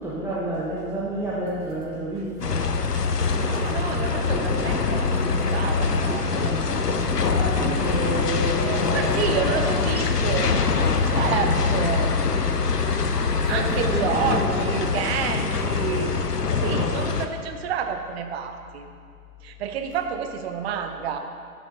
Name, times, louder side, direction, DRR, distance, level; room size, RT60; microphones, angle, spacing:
voice 1, 0.0-2.7 7.3-9.8 13.4-14.7, right 1 dB, 5° right, -7 dB, 0.8 m, -30 dB
sound 1, 0.5-13.5, right 1 dB, 80° right, 2.0 m, -47 dB
sound 2, 2.4-17.3, left 4 dB, 90° left, 0.7 m, -23 dB
voice 2, 3.3-6.6 8.9-10.6 11.0-12.1 13.5-16.2 16.6-18.9 19.4-21.2, right 7 dB, 40° right, 6 dB, 0.9 m, -29 dB
12.0 x 5.9 x 3.9 m, 2.2 s
figure-of-eight pair, 105°, 46 cm